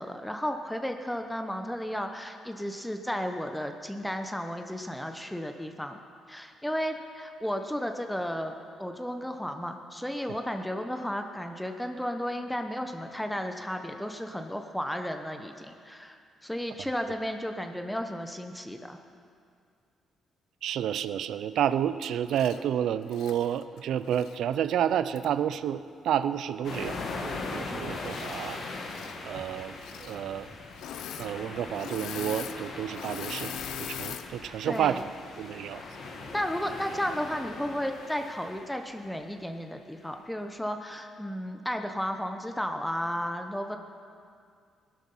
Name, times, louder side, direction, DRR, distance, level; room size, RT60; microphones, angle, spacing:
voice 1, 0.0-6.0 6.3-8.5 8.8-19.0 34.6-35.0 36.3-43.8, equal, 5° left, 5 dB, 1.0 m, -33 dB
voice 2, 20.6-28.6 29.2-30.5 31.2-35.0 35.4-35.8, right 10 dB, 75° right, 13 dB, 0.5 m, -30 dB
Engine / Mechanisms, 22.3-22.6 23.0-24.4 25.2-25.3 28.0-28.5 28.8-29.2 29.7-30.2 30.7-31.3 31.6-34.3 34.8-35.0, left 10 dB, 85° left, 0.7 m, -41 dB
sound 1, 26.6-39.2, left 3 dB, 65° left, 2.1 m, -40 dB
17.0 x 12.0 x 5.6 m, 2.3 s
cardioid pair, 90°, 0 cm